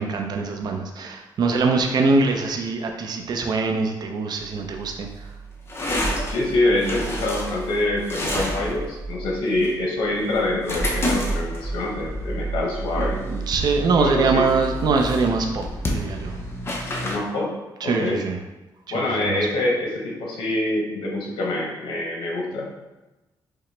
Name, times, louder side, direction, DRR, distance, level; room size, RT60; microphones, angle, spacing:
voice 1, 0.0-5.1 13.3-16.4 17.8-18.4 18.9-19.4, right 4 dB, 60° right, 3 dB, 0.5 m, -23 dB
sound 1, 4.4-17.2, equal, 30° left, 0.6 m, -29 dB
voice 2, 6.3-13.2 13.9-14.5 17.0-17.5 17.8-18.2 18.9-22.7, left 2 dB, 85° left, -1 dB, 0.7 m, -25 dB
4.8 x 2.1 x 3.2 m, 1.1 s
cardioid pair, 95°, 8 cm